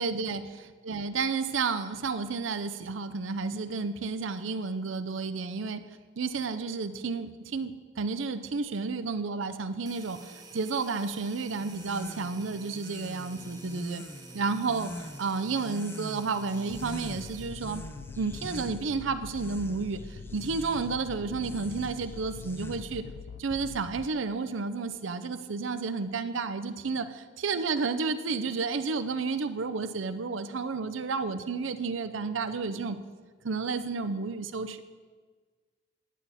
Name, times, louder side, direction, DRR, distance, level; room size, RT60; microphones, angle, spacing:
voice 1, 0.0-5.9 6.2-14.0 14.3-17.9 18.2-23.1 23.4-33.0 33.4-34.8, right 4 dB, 75° right, 11 dB, 0.6 m, -31 dB
sound 1, 9.9-17.6, right 4 dB, 20° right, 0.9 m, -51 dB
sound 2, 11.6-23.1, left 1 dB, 10° left, 0.4 m, -44 dB
sound 3, 16.7-24.1, left 5 dB, 85° left, 0.4 m, -44 dB
11.0 x 8.5 x 4.2 m, 1.5 s
head